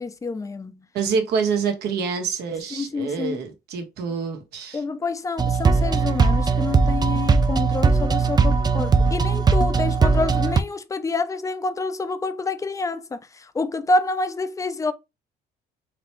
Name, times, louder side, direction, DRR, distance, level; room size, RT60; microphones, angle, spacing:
voice 1, 0.0-0.9 2.7-3.4 4.7-14.9, left 3 dB, 20° left, 0.6 m, -27 dB
voice 2, 0.9-4.8, right 5 dB, 75° right, 1.4 m, -26 dB
sound 1, 5.4-10.6, right 4 dB, 25° right, 0.5 m, -19 dB
4.1 x 3.3 x 3.1 m
cardioid pair, 110°, 17 cm